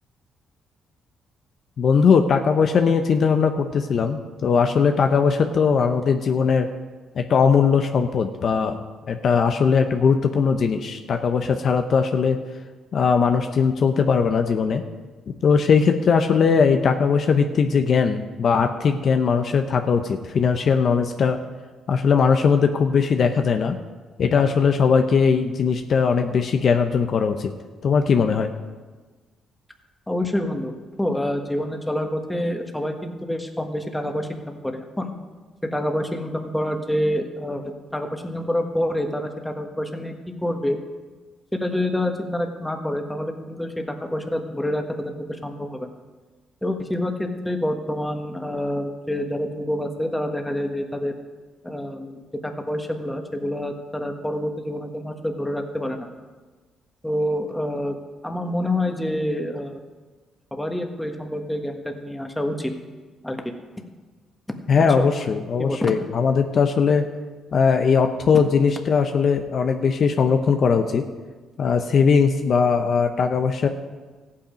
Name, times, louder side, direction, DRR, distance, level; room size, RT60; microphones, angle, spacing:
voice 1, 1.8-6.7 7.2-8.8 9.1-12.4 12.9-14.8 15.4-21.4 21.9-23.8 24.2-27.5 27.8-28.5 64.7-67.1 67.5-71.0 71.6-73.7, left 5 dB, 55° left, 6 dB, 0.8 m, -19 dB
voice 2, 30.1-35.1 35.7-37.6 37.9-40.1 40.4-40.8 41.5-45.9 46.6-51.1 51.6-52.2 52.4-56.1 57.0-57.9 58.2-59.8 60.5-62.7 63.2-63.5 65.0-65.1 65.6-65.9, left 1 dB, 5° left, 4 dB, 1.5 m, -27 dB
14.5 x 8.6 x 5.2 m, 1.3 s
cardioid pair, 90°, 0 cm